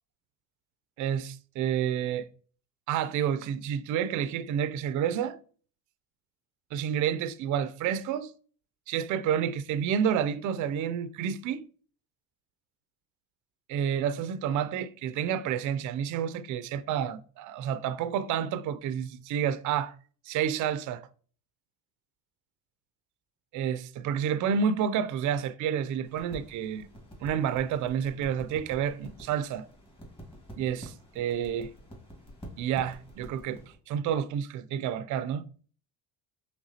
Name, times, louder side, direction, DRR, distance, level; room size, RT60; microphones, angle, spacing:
voice 1, 1.0-2.3 2.9-5.4 6.7-8.3 8.9-11.7 13.7-19.9 20.3-21.0 23.5-26.9 27.2-29.6 30.6-31.7 32.6-33.6 33.9-35.4, right 8 dB, 55° right, 0.4 m, -29 dB
sound 1, 26.0-33.8, equal, 15° left, 1.6 m, -48 dB
4.9 x 3.3 x 2.7 m
cardioid pair, 110°, 36 cm